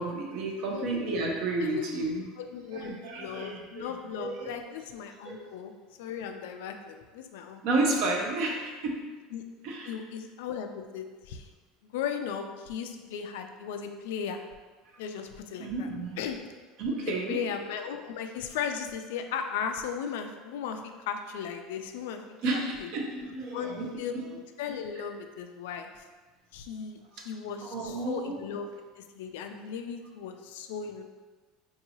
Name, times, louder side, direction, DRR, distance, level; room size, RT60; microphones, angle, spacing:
voice 1, 0.0-2.3 2.7-3.9 4.2-4.6 5.2-5.4 7.6-9.0 9.6-10.0 15.6-16.2 16.8-17.4 22.4-24.0 27.6-28.4, right 2 dB, 45° right, 1 dB, 0.6 m, -31 dB
voice 2, 2.2-5.7 6.0-8.3 9.3-9.4 9.9-11.5 11.9-14.4 15.0-15.9 16.2-16.4 17.1-22.2 22.5-22.9 23.5-24.1 24.6-26.0 26.5-27.0 27.2-28.7 29.0-31.0, left 7 dB, 85° left, 6 dB, 0.4 m, -37 dB
4.6 x 2.7 x 2.8 m, 1.3 s
cardioid pair, 175°, 0 cm